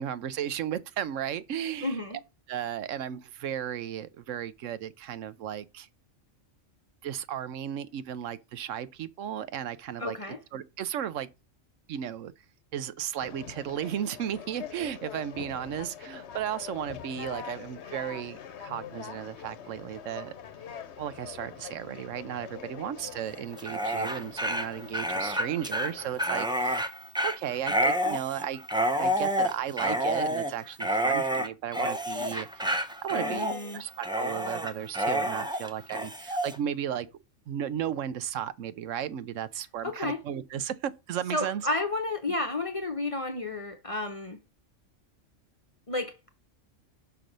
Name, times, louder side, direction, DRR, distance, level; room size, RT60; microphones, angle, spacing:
voice 1, 0.0-2.0 2.5-5.9 7.0-10.2 10.5-11.3 11.9-12.3 12.7-20.3 21.0-28.6 29.0-33.5 33.7-37.1 37.5-41.6, right 10 dB, 75° right, 1.0 m, -35 dB
voice 2, 1.8-2.2 10.0-10.4 33.1-33.8 39.8-40.2 41.3-44.4 45.9-46.3, left 2 dB, 30° left, 0.7 m, -32 dB
Conversation, 13.2-26.3, left 8 dB, 60° left, 1.0 m, -44 dB
Dog, 23.5-36.6, equal, 5° right, 0.5 m, -29 dB
6.0 x 4.7 x 5.2 m
omnidirectional pair, 1.3 m